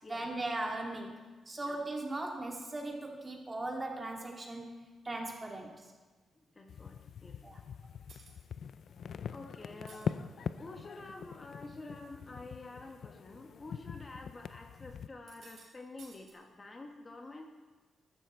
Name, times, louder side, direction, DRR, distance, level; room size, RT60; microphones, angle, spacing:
voice 1, 0.1-1.1 1.5-4.7 5.0-5.8 7.4-7.6, right 2 dB, 25° right, 0 dB, 2.6 m, -38 dB
voice 2, 6.4-7.4 9.3-17.5, left 2 dB, 30° left, 3 dB, 1.2 m, -49 dB
sound 1, 6.7-15.1, left 7 dB, 65° left, 0.5 m, -43 dB
sound 2, 8.1-8.4 9.7-10.0 10.8-11.2 11.7-12.1 12.4-12.5 13.4-13.5 15.1-15.7 16.0-16.3, right 4 dB, 70° right, 3.7 m, -57 dB
13.5 x 12.0 x 4.5 m, 1.3 s
cardioid pair, 100°, 0 cm